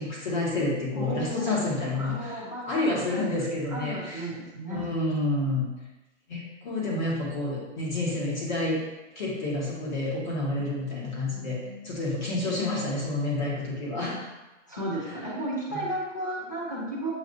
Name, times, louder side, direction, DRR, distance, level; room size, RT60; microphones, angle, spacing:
voice 1, 0.0-2.3 2.7-4.3 4.7-5.6 6.3-8.8 9.1-11.6 11.8-14.2 15.7-15.8, left 2 dB, 40° left, -5 dB, 1.5 m, -29 dB
voice 2, 0.9-1.6 1.9-3.2 3.7-4.8 11.3-11.9 14.7-17.1, right 1 dB, 15° left, -7 dB, 0.4 m, -34 dB
7.0 x 2.5 x 2.6 m, 1.1 s
hypercardioid pair, 170°, 37 cm